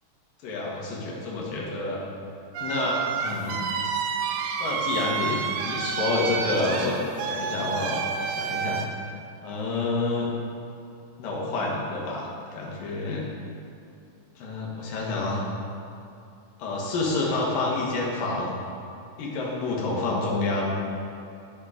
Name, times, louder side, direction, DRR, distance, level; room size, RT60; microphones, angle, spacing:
voice 1, 0.4-2.0 2.6-3.6 4.6-5.4 5.7-8.8 9.4-10.3 11.2-12.3 12.5-13.3 14.4-15.5 16.6-18.6 19.2-20.7, left 2 dB, 80° left, -3 dB, 3.4 m, -28 dB
sound 1, 2.5-8.9, right 6 dB, 85° right, 2.4 m, -29 dB
11.0 x 8.1 x 5.1 m, 2.6 s
omnidirectional pair, 3.9 m